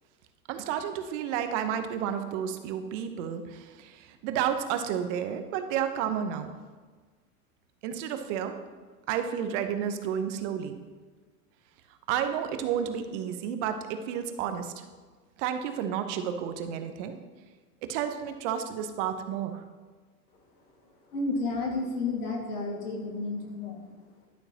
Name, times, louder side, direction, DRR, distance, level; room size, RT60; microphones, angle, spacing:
voice 1, 0.5-6.5 7.8-8.6 9.1-10.8 12.1-14.8 15.4-17.2 17.8-19.6, right 8 dB, 55° right, 8 dB, 1.0 m, -31 dB
voice 2, 21.1-24.0, left 3 dB, 85° left, 0 dB, 2.1 m, -31 dB
11.5 x 6.7 x 2.9 m, 1.4 s
hypercardioid pair, 110°, 45 cm